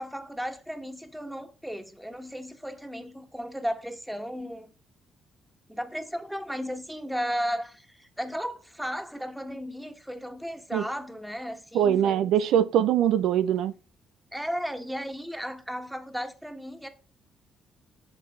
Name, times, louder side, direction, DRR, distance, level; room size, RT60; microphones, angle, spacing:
voice 1, 0.0-4.7 5.7-12.3 14.3-16.9, equal, 5° right, 1.6 m, -35 dB
voice 2, 11.7-13.7, right 10 dB, 85° right, 0.5 m, -22 dB
8.9 x 6.6 x 3.7 m
cardioid pair, 90°, 0 cm